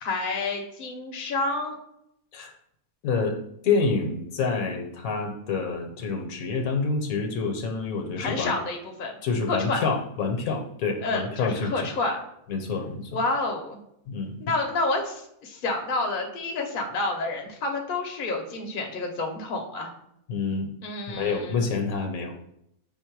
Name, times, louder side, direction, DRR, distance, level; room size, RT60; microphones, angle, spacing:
voice 1, 0.0-1.8 8.2-9.1 9.5-9.8 11.0-12.2 13.1-13.8 14.4-19.9 20.8-21.6, left 2 dB, 45° left, 2 dB, 0.7 m, -29 dB
voice 2, 3.0-3.4 3.6-8.5 9.2-11.9 12.5-13.1 14.1-14.4 20.3-20.7 21.1-22.5, left 4 dB, 70° left, 4 dB, 1.1 m, -27 dB
5.4 x 2.1 x 4.5 m, 0.77 s
omnidirectional pair, 1.6 m